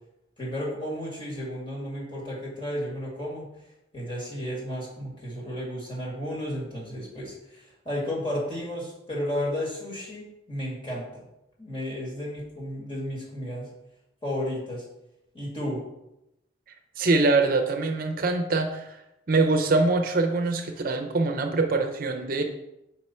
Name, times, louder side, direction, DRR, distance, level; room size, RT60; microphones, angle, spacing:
voice 1, 0.4-3.5 3.9-11.2 11.6-13.7 14.2-14.9 15.3-15.9, equal, 30° left, -4 dB, 2.0 m, -33 dB
voice 2, 17.0-19.0 19.3-22.4, right 3 dB, 50° right, 5 dB, 0.6 m, -24 dB
5.4 x 4.7 x 4.3 m, 0.88 s
head